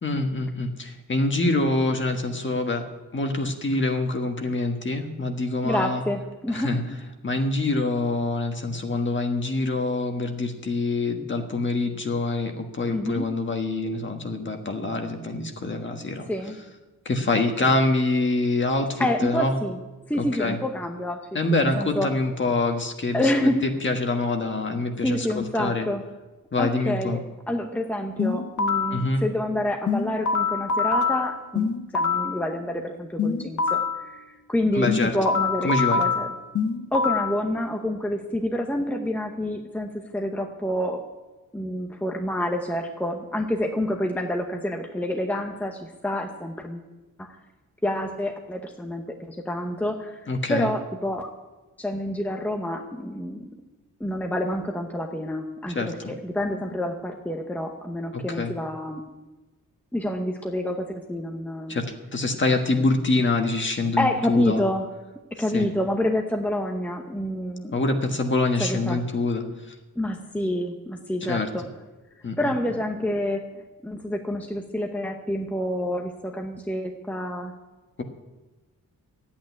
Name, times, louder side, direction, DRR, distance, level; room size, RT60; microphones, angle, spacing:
voice 1, 0.0-2.8 3.1-6.0 6.5-6.8 7.2-16.3 17.0-19.5 20.2-20.6 21.3-23.5 23.8-25.9 26.5-27.2 28.9-29.2 34.7-35.1 35.6-36.0 50.3-50.7 55.7-56.1 58.1-58.5 61.7-61.8 62.1-64.6 65.5-65.7 67.7-69.7 71.2-71.5 72.2-72.5, left 2 dB, 35° left, 4 dB, 1.5 m, -25 dB
voice 2, 5.6-6.7 12.9-13.3 16.3-16.6 19.0-19.8 20.1-21.2 21.6-22.1 23.1-23.6 25.0-26.0 26.5-27.2 27.5-31.7 31.9-36.3 36.9-41.1 41.5-46.9 47.2-47.4 47.8-50.2 50.5-51.3 51.8-53.5 54.0-56.0 56.2-59.0 59.9-61.8 64.0-64.9 65.4-67.7 68.6-69.0 70.0-71.6 72.4-73.5 73.8-77.5, left 1 dB, 5° left, 3 dB, 0.8 m, -28 dB
sound 1, 28.2-29.0 29.9-32.4 33.2-34.0 34.9-37.4, left 5 dB, 55° left, 1.2 m, -24 dB
13.0 x 8.8 x 9.5 m, 1.2 s
wide cardioid pair, 170°, 34 cm